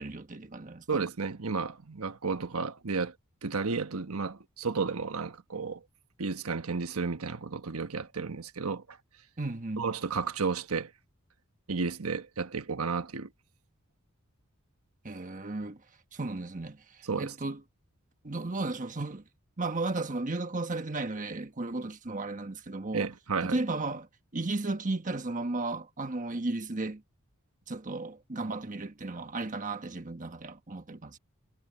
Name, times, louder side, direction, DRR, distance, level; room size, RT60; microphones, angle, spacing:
voice 1, 0.0-1.0 9.4-9.9 15.0-15.8 16.1-17.6 18.2-19.2 19.6-23.1 23.4-24.1 24.3-27.0 27.7-31.2, right 2 dB, 35° right, 1.3 m, -34 dB
voice 2, 0.9-3.1 3.4-5.8 6.2-9.0 9.8-10.9 11.7-13.3 17.0-17.3 22.9-23.6, right 4 dB, 80° right, 1.2 m, -32 dB
head